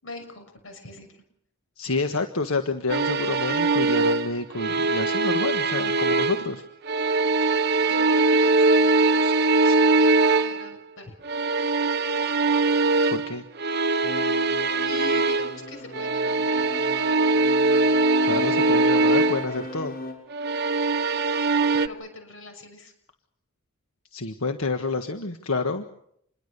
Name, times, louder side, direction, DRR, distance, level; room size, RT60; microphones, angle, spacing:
voice 1, 0.0-1.2 6.3-6.6 7.4-7.5 7.8-11.1 14.6-16.7 21.7-22.9, left 3 dB, 65° left, 7 dB, 6.5 m, -42 dB
voice 2, 1.8-6.6 13.1-13.4 18.2-20.0 24.1-25.8, left 3 dB, 80° left, 6 dB, 1.5 m, -28 dB
sound 1, 2.9-6.5 6.9-10.7 11.2-15.6 15.9-19.5 20.3-21.9, right 3 dB, 50° right, 1.0 m, -22 dB
sound 2, 14.0-20.1, left 2 dB, 45° left, 6.7 m, -36 dB
27.5 x 22.0 x 6.9 m, 0.73 s
head